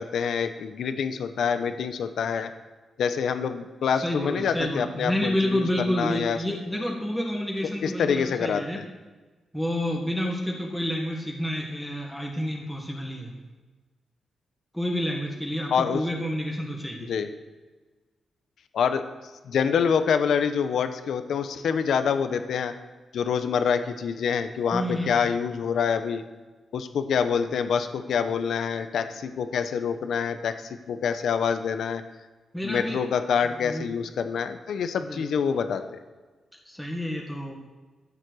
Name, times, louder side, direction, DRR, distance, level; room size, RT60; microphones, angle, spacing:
voice 1, 0.0-2.5 3.0-6.4 7.8-8.8 15.7-16.0 17.0-17.3 18.7-19.1 19.4-22.7 23.1-26.2 26.7-32.0 32.6-36.0, left 7 dB, 75° left, 9 dB, 1.0 m, -26 dB
voice 2, 4.0-8.8 9.5-13.3 14.7-17.1 24.7-25.3 32.5-33.0 33.6-33.9 35.0-35.3 36.7-37.5, equal, ahead, -1 dB, 1.8 m, -29 dB
13.5 x 7.9 x 6.4 m, 1.3 s
wide cardioid pair, 140°, 0 cm